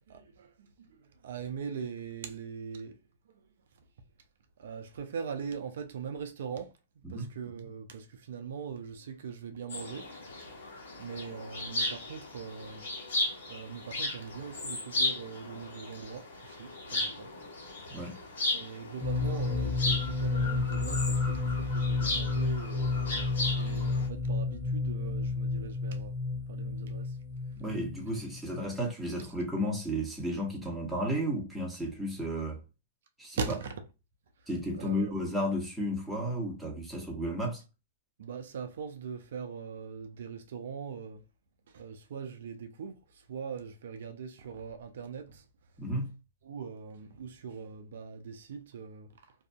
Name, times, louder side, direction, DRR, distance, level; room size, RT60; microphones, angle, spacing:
voice 1, 0.0-3.0 3.3-3.5 3.7-3.9 4.6-10.1 11.0-12.9 13.5-17.3 18.5-22.9 23.5-26.1 26.5-27.2 27.5-27.6 28.0-28.1 33.4-33.8 34.4-34.5 34.8-35.1 38.2-41.2 41.7-45.5 46.4-49.3, right 6 dB, 75° right, 0.4 m, -41 dB
sound 1, 9.7-24.1, left 2 dB, 75° left, 1.2 m, -36 dB
sound 2, 19.0-28.7, left 3 dB, 15° left, 0.6 m, -31 dB
voice 2, 27.6-32.6 33.2-33.4 34.5-37.6 45.8-46.1, equal, ahead, 1.1 m, -33 dB
2.7 x 2.5 x 2.2 m
hypercardioid pair, 120°, 0 cm